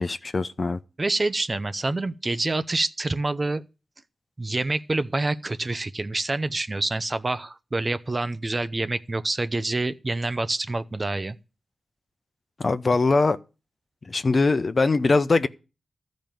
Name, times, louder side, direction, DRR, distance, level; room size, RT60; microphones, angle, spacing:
voice 1, 0.0-0.8 12.6-13.4 14.1-15.5, left 3 dB, 50° left, 0.8 m, -22 dB
voice 2, 1.0-3.6 4.4-11.4, right 2 dB, 40° right, 0.8 m, -27 dB
13.5 x 5.3 x 9.1 m
cardioid pair, 45°, 0 cm